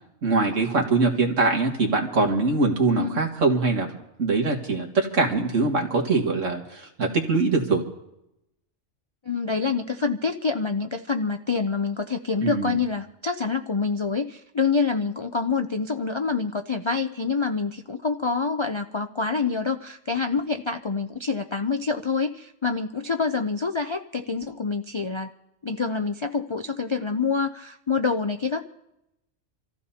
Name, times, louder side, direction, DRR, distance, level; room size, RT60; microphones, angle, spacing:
voice 1, 0.2-3.9 4.2-7.8 12.4-12.8, right 3 dB, 75° right, 1 dB, 2.2 m, -23 dB
voice 2, 9.3-25.3 25.6-28.6, left 4 dB, 45° left, 5 dB, 0.3 m, -26 dB
27.0 x 15.0 x 2.8 m, 0.85 s
omnidirectional pair, 1.3 m